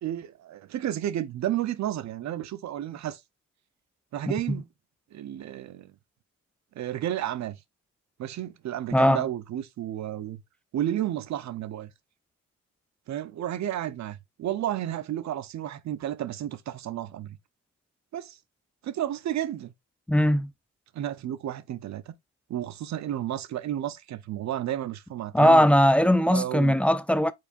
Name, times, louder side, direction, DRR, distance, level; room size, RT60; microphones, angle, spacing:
voice 1, 0.0-3.2 4.1-4.7 5.1-5.9 6.7-7.6 8.2-10.4 10.7-11.9 13.1-17.4 18.1-18.4 18.8-19.7 20.9-22.1 22.5-25.6 26.3-26.8, right 12 dB, 65° right, 0.8 m, -32 dB
voice 2, 8.9-9.2 20.1-20.5 25.3-27.3, equal, 5° left, 0.4 m, -20 dB
4.5 x 4.4 x 2.5 m
cardioid pair, 90°, 30 cm